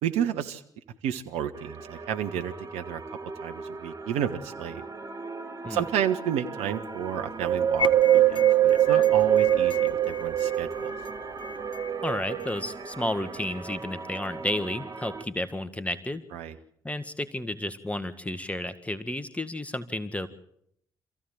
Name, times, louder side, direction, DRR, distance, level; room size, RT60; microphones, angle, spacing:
voice 1, 0.0-0.6 1.0-3.0 3.4-4.8 5.6-10.9 16.3-16.6, right 9 dB, 70° right, 7 dB, 1.3 m, -31 dB
sound 1, 1.5-15.2, right 3 dB, 30° right, 2.4 m, -39 dB
Wind, 7.4-11.0 11.5-12.7 13.3-13.4, right 12 dB, 50° right, 0.9 m, -22 dB
sound 2, 7.8-12.8, left 7 dB, 45° left, 1.7 m, -37 dB
voice 2, 12.0-16.2 16.8-20.3, left 1 dB, 10° left, 11 dB, 1.9 m, -32 dB
27.0 x 15.5 x 7.8 m, 0.72 s
figure-of-eight pair, 45°, 12 cm